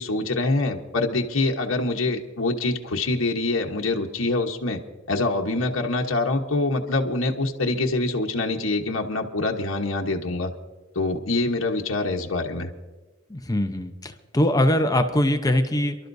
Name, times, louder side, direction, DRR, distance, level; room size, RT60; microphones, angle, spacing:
voice 1, 0.0-4.8 5.1-10.5 10.9-12.7, left 2 dB, 70° left, 1 dB, 1.1 m, -25 dB
voice 2, 13.3-16.0, left 1 dB, 20° left, 7 dB, 0.8 m, -22 dB
28.5 x 12.0 x 2.7 m, 1.2 s
head